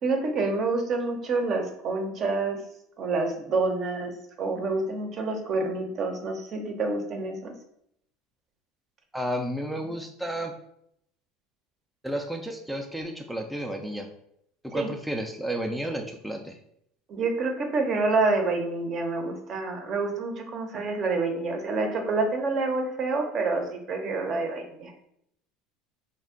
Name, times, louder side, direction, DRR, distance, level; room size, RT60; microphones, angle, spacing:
voice 1, 0.0-2.6 3.0-4.1 4.4-7.5 14.7-14.9 17.1-24.9, right 3 dB, 45° right, 4 dB, 0.6 m, -27 dB
voice 2, 9.1-10.5 12.0-14.1 14.6-16.6, equal, ahead, 2 dB, 0.3 m, -32 dB
2.4 x 2.1 x 3.6 m, 0.73 s
supercardioid pair, 105°, 0 cm